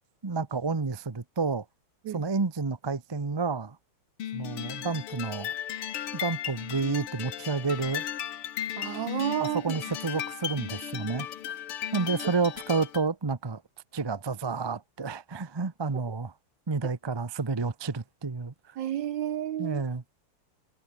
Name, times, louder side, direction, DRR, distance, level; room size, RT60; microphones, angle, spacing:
voice 1, 0.2-1.6 2.1-3.8 4.3-5.5 6.1-8.0 9.4-11.3 11.9-13.6 13.9-16.3 16.7-18.8 19.6-20.0, right 4 dB, 40° right, 0.3 m, -30 dB
sound 1, 4.2-13.1, left 11 dB, 85° left, 2.2 m, -36 dB
voice 2, 8.8-9.8 18.8-19.8, right 11 dB, 65° right, 1.4 m, -31 dB
omnidirectional pair, 2.4 m